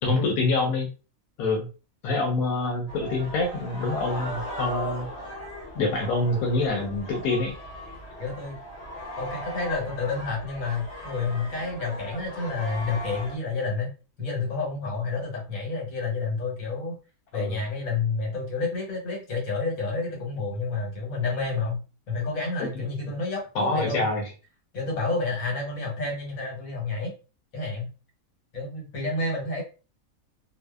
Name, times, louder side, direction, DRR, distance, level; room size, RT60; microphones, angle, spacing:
voice 1, 0.0-0.9 1.4-1.7 2.0-5.1 5.7-7.5 17.3-17.6 22.6-22.7 23.5-24.3, left 2 dB, 90° left, 1 dB, 1.1 m, -26 dB
sound 1, 2.9-13.4, equal, 50° left, 1.2 m, -38 dB
voice 2, 8.2-8.6 9.2-13.9 14.2-16.9 17.3-21.8 22.1-24.0 24.7-27.1 27.5-27.9 28.5-29.6, left 3 dB, 75° left, 0 dB, 1.4 m, -29 dB
2.6 x 2.1 x 2.2 m, 0.34 s
omnidirectional pair, 1.5 m